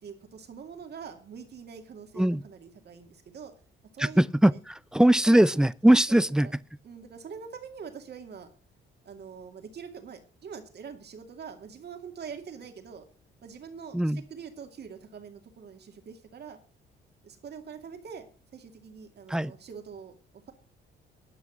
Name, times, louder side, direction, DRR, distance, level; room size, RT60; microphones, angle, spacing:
voice 1, 0.0-3.5 3.9-4.6 5.3-5.6 6.1-6.6 6.8-8.5 9.0-13.1 13.4-16.6 17.2-20.2, right 6 dB, 55° right, 2.4 m, -44 dB
voice 2, 4.0-6.5 13.9-14.2 19.3-19.5, right 1 dB, 5° right, 0.5 m, -21 dB
11.0 x 6.0 x 7.8 m
cardioid pair, 90°, 20 cm